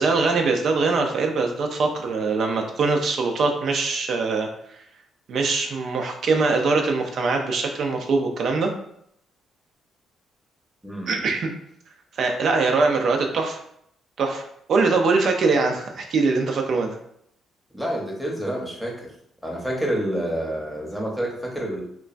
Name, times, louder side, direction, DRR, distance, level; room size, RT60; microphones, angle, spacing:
voice 1, 0.0-4.8 5.3-8.7 11.1-11.5 12.2-13.6 14.2-14.4 14.7-17.0, right 4 dB, 60° right, 3 dB, 0.4 m, -22 dB
voice 2, 10.8-11.1 17.7-19.1 19.4-21.8, right 1 dB, ahead, -2 dB, 0.8 m, -28 dB
2.9 x 2.2 x 2.5 m, 0.71 s
cardioid pair, 90°, 0 cm